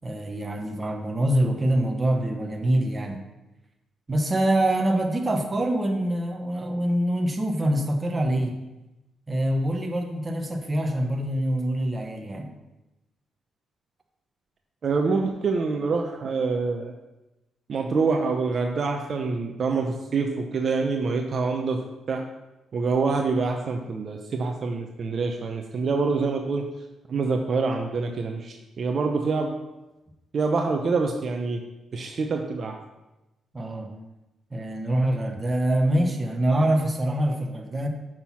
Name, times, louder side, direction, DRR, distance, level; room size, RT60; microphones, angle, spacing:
voice 1, 0.0-3.2 4.1-8.6 9.3-12.5 33.5-33.9 34.5-37.9, right 1 dB, 20° right, 3 dB, 1.2 m, -25 dB
voice 2, 14.8-16.9 17.7-22.3 22.7-26.7 27.1-29.6 30.3-31.6 31.9-32.8, right 4 dB, 50° right, 3 dB, 0.8 m, -26 dB
6.8 x 6.0 x 5.7 m, 1.0 s
cardioid pair, 110°, 0 cm